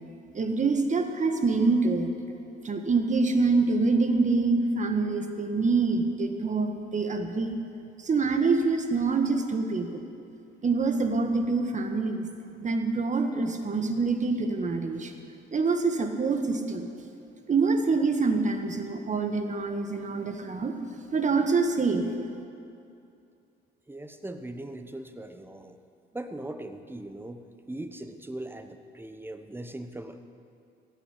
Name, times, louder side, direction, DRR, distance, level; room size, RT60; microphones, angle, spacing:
voice 1, 0.3-2.1 2.6-7.5 8.0-10.0 10.6-12.3 12.6-15.1 15.5-16.9 17.5-20.7 21.1-22.1, right 4 dB, 40° right, 6 dB, 1.6 m, -25 dB
voice 2, 23.9-25.8 26.1-30.2, right 1 dB, 10° right, 8 dB, 1.0 m, -40 dB
16.0 x 9.2 x 8.3 m, 2.6 s
cardioid pair, 90°, 20 cm